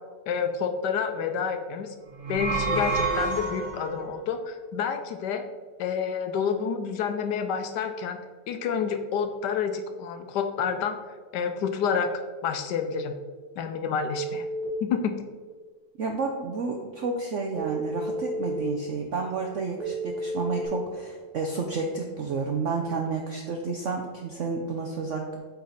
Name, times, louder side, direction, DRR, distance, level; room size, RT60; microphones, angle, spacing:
voice 1, 0.3-1.9 2.3-5.4 5.8-8.2 8.5-11.0 11.3-12.1 12.4-13.1 13.6-14.5 14.8-15.1, left 6 dB, 75° left, 7 dB, 1.1 m, -29 dB
sound 1, 2.1-4.0, right 3 dB, 90° right, 1.6 m, -28 dB
Telephone, 14.1-14.6 17.6-18.6 19.8-20.7, right 1 dB, 20° right, 2.3 m, -32 dB
voice 2, 16.0-25.4, right 4 dB, 70° right, 2 dB, 0.7 m, -31 dB
8.5 x 4.2 x 4.0 m, 1.5 s
omnidirectional pair, 2.0 m